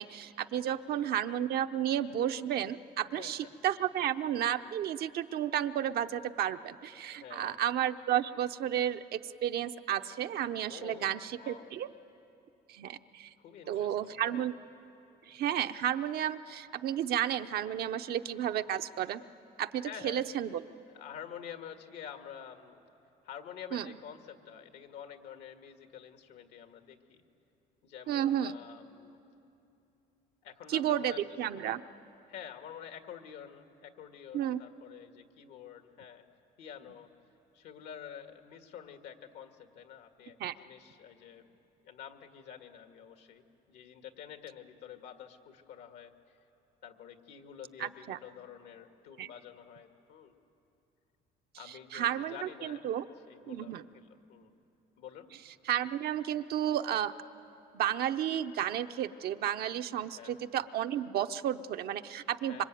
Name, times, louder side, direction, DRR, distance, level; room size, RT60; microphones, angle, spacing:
voice 1, 0.0-11.9 12.7-13.3 13.7-14.5 15.3-19.2 19.6-20.6 23.7-23.8 28.1-28.5 30.7-31.8 34.3-34.6 40.4-40.5 47.8-48.2 49.2-49.3 51.9-53.0 53.5-53.9 55.7-57.1 57.7-62.6, right 11 dB, 65° right, 8 dB, 0.8 m, -32 dB
voice 2, 0.7-1.1 3.0-3.5 7.2-7.6 10.7-11.7 13.4-14.4 19.8-20.3 20.9-22.8 23.2-27.2 27.8-29.2 30.4-31.7 32.3-36.2 36.6-37.1 37.5-41.5 41.8-46.4 46.8-50.3 51.6-52.8 53.3-54.5 55.0-55.3 60.1-60.4 62.5-62.6, left 8 dB, 80° left, 6 dB, 1.9 m, -48 dB
26.0 x 24.5 x 9.3 m, 2.9 s
cardioid pair, 110°, 17 cm